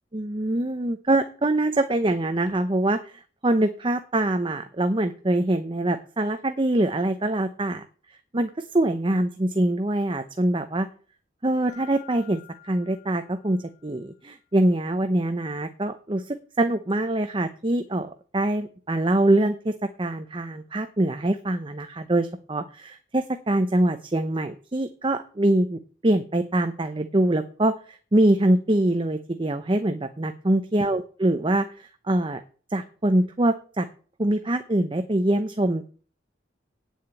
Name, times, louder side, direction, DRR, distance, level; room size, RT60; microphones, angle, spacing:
voice 1, 0.1-7.9 8.3-10.9 11.4-32.4 32.7-33.9 34.2-35.8, right 1 dB, 30° right, 8 dB, 0.7 m, -24 dB
Mallet percussion, 11.7-14.2, left 15 dB, 25° left, 1.9 m, -51 dB
8.9 x 7.2 x 8.8 m, 0.41 s
head